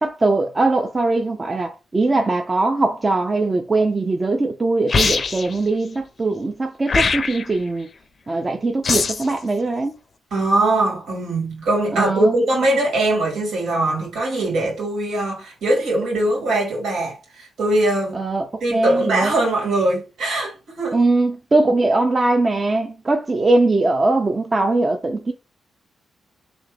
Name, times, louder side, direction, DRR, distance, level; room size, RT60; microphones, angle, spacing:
voice 1, 0.0-7.9 8.3-10.0 11.9-12.4 18.1-19.3 20.9-25.3, right 2 dB, 25° right, 0.5 m, -21 dB
sound 1, 4.9-5.6 6.9-7.6 8.8-9.3, left 4 dB, 40° left, 0.5 m, -21 dB
voice 2, 10.3-18.2 18.6-21.0, right 2 dB, 85° right, 2.5 m, -21 dB
3.5 x 3.0 x 3.3 m
cardioid pair, 100°, 0 cm